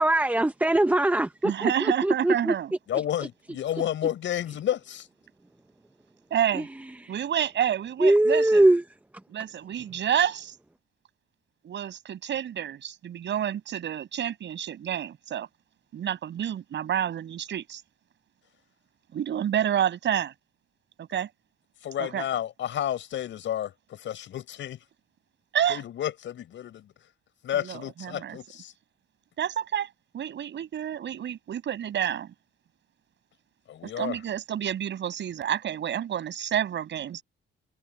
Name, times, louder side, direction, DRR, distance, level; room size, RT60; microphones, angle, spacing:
voice 1, 0.0-2.5 6.5-6.7 7.0-7.1 8.0-8.8, right 1 dB, 10° right, 0.8 m, -21 dB
voice 2, 1.4-2.7 6.3-6.7 7.1-8.6 9.3-10.5 11.6-15.5 15.9-17.8 19.1-20.3 21.0-21.3 22.0-22.3 25.5-25.8 27.5-28.4 29.4-29.9 30.1-32.3 33.8-37.2, right 10 dB, 65° right, 7.2 m, -29 dB
voice 3, 2.9-5.1 21.8-24.8 25.7-26.9 27.4-28.7 33.7-34.2, left 11 dB, 70° left, 7.1 m, -31 dB
cardioid pair, 90°, 20 cm